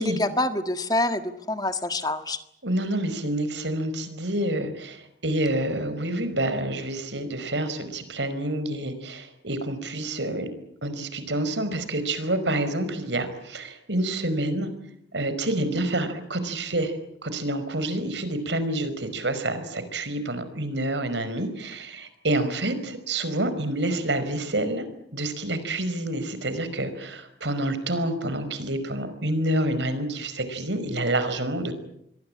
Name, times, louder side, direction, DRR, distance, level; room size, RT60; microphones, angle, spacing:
voice 1, 0.0-2.4, left 2 dB, 20° left, 9 dB, 1.6 m, -26 dB
voice 2, 2.6-10.5 10.8-14.7 15.1-16.9 17.2-24.8 25.1-31.7, right 1 dB, 85° right, 11 dB, 5.1 m, -28 dB
27.5 x 22.0 x 8.7 m, 0.75 s
head